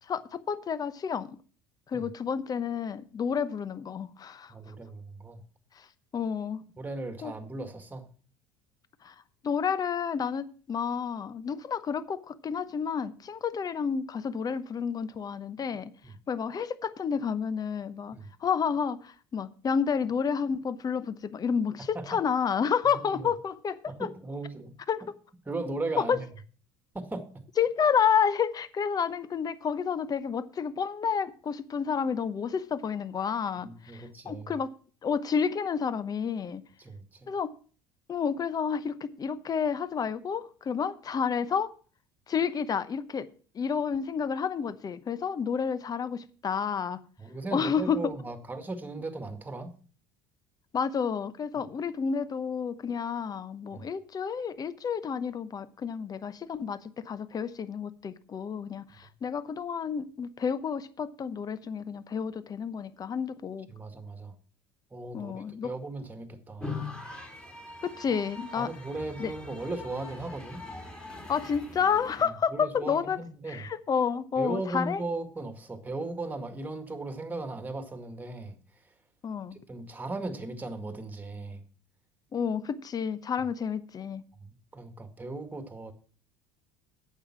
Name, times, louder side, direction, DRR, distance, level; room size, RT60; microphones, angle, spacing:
voice 1, 0.0-1.4 1.9-4.5 5.8-5.9 6.1-6.6 7.2-7.3 9.0-9.1 9.4-15.9 16.3-24.1 24.9-25.0 26.0-26.2 27.6-34.7 35.0-36.6 37.3-37.5 38.1-41.7 42.3-43.3 43.5-47.0 47.5-48.0 50.7-63.7 65.1-65.7 67.8-68.7 69.2-69.3 71.3-73.2 73.5-75.0 79.2-79.6 82.3-84.2, left 6 dB, 35° left, 15 dB, 0.9 m, -30 dB
voice 2, 4.5-5.4 6.8-8.1 16.0-16.1 18.1-18.3 21.9-22.2 22.9-23.3 23.9-24.7 25.5-26.3 26.9-27.3 33.6-34.5 36.8-37.3 47.2-49.7 51.6-51.7 53.7-53.9 63.7-64.4 64.9-66.8 68.6-70.6 72.2-73.7 74.4-78.6 78.8-78.9 79.5-81.6 84.4-85.9, right 2 dB, 15° right, 7 dB, 2.0 m, -37 dB
sound 1, 66.6-72.3, left 3 dB, 10° left, 3.1 m, -42 dB
8.9 x 7.6 x 6.0 m, 0.40 s
hypercardioid pair, 75°, 12 cm